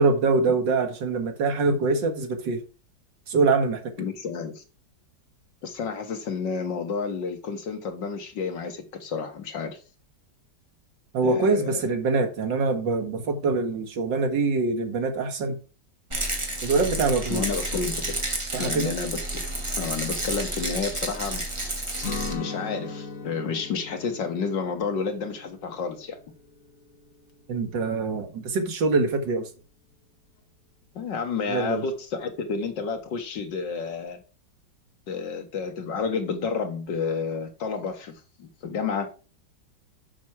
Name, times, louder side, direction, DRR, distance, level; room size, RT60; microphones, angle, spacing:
voice 1, 0.0-2.6 3.3-3.9 11.1-15.6 16.6-17.4 18.5-18.9 27.5-29.5 31.5-31.8, right 3 dB, 80° right, 2.2 m, -24 dB
voice 2, 4.0-4.6 5.6-9.8 11.2-11.9 17.3-18.1 18.6-19.2 19.8-21.4 22.3-26.2 31.0-34.2 35.1-39.1, left 5 dB, 80° left, 2.2 m, -30 dB
Rattle, 16.1-22.3, right 1 dB, 15° right, 1.7 m, -30 dB
Guitar, 22.0-27.8, left 4 dB, 50° left, 1.5 m, -39 dB
7.3 x 5.9 x 4.6 m
omnidirectional pair, 1.9 m